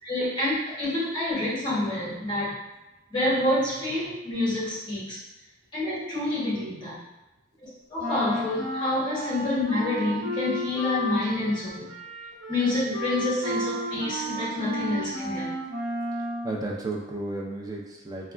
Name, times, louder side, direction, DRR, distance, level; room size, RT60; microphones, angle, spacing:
voice 1, 0.0-2.5 3.1-5.2 5.7-7.0 7.6-11.9 12.5-15.5, left 1 dB, 25° left, -8 dB, 1.1 m, -28 dB
Wind instrument woodwind instrument, 8.0-16.6, equal, 80° right, 1.0 m, -33 dB
voice 2, 16.1-18.3, right 2 dB, 20° right, -1 dB, 0.4 m, -34 dB
3.1 x 2.2 x 2.4 m, 1.0 s
head